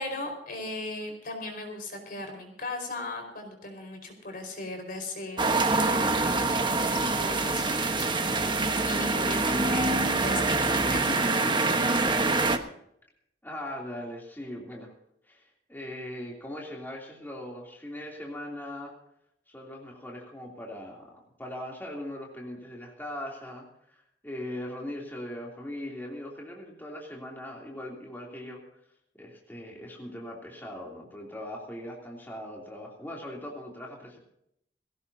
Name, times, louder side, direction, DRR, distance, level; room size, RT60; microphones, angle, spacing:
voice 1, 0.0-8.1 8.9-9.9 10.2-11.4, left 2 dB, 55° left, 3 dB, 4.9 m, -38 dB
sound 1, 5.4-12.6, right 3 dB, 25° right, 1.2 m, -25 dB
voice 2, 13.4-14.9 15.2-18.9 19.5-28.6 29.1-34.2, left 1 dB, 10° left, -2 dB, 3.1 m, -40 dB
20.5 x 17.0 x 2.8 m, 0.74 s
head